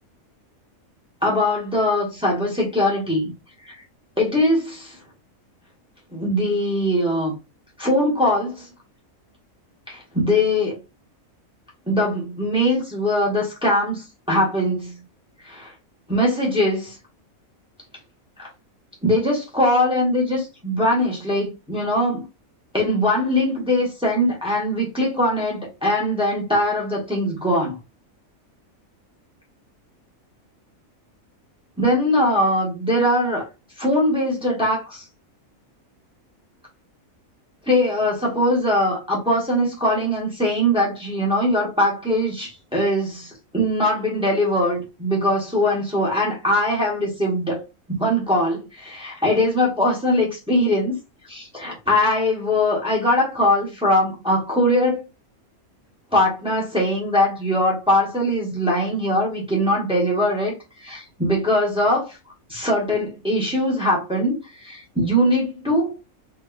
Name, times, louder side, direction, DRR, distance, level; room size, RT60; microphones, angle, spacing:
voice 1, 1.2-3.3 3.6-3.8 4.2-5.0 6.1-7.3 7.8-8.7 9.9-10.8 11.9-15.0 15.4-15.7 16.1-17.0 18.4-18.5 19.0-22.3 22.7-27.8 31.8-33.5 33.8-35.0 37.7-47.6 48.0-51.0 51.3-55.0 56.1-62.2 62.5-65.9, left 1 dB, 5° right, 1.2 m, -21 dB
3.7 x 2.6 x 2.4 m
omnidirectional pair, 1.5 m